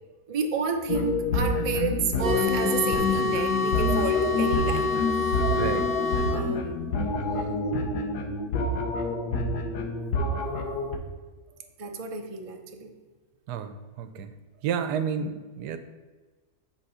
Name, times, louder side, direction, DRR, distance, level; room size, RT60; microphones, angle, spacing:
voice 1, 0.3-4.9 6.3-6.8 11.8-12.9, right 4 dB, 50° right, 4 dB, 0.4 m, -30 dB
sound 1, 0.9-11.0, left 2 dB, 75° left, 1.4 m, -28 dB
sound 2, 2.2-6.4, left 4 dB, 15° right, 0.8 m, -27 dB
voice 2, 5.5-6.0 13.5-14.3 14.6-15.8, right 7 dB, 80° right, 10 dB, 1.2 m, -31 dB
9.2 x 3.7 x 5.5 m, 1.4 s
omnidirectional pair, 1.7 m